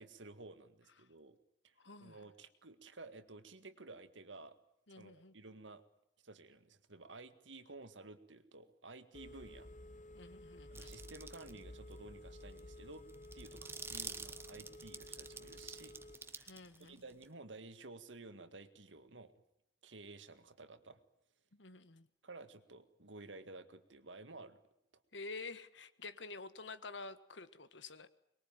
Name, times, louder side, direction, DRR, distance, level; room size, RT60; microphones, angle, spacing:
voice 1, 0.0-1.4 1.6-1.8 2.0-4.6 5.0-5.8 6.2-9.7 10.7-13.1 13.3-16.5 16.8-19.3 19.8-21.0 22.2-24.6, right 3 dB, 85° right, 10 dB, 2.0 m, -53 dB
voice 2, 1.8-2.2 4.9-5.3 10.1-10.9 16.4-17.0 21.5-22.1 25.1-28.1, left 3 dB, 75° left, 13 dB, 1.6 m, -49 dB
Telephone, 9.1-16.1, left 1 dB, 45° left, 1.1 m, -53 dB
sound 1, 10.8-11.6 11.9-12.0 12.4-17.3, right 4 dB, 15° right, 1.2 m, -48 dB
24.5 x 21.5 x 9.1 m, 0.78 s
head